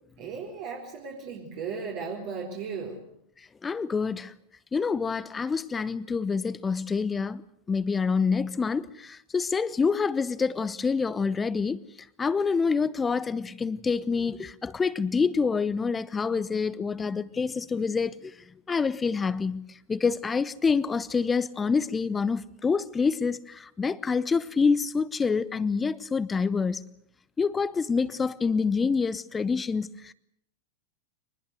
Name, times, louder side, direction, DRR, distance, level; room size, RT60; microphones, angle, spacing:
voice 1, 0.2-3.1, right 5 dB, 45° right, 4.3 m, -36 dB
voice 2, 3.6-4.3 4.7-7.4 7.7-11.8 12.2-18.3 18.7-26.8 27.4-30.1, left 5 dB, 15° left, 0.8 m, -27 dB
24.0 x 20.5 x 8.0 m
figure-of-eight pair, 90°, 0 cm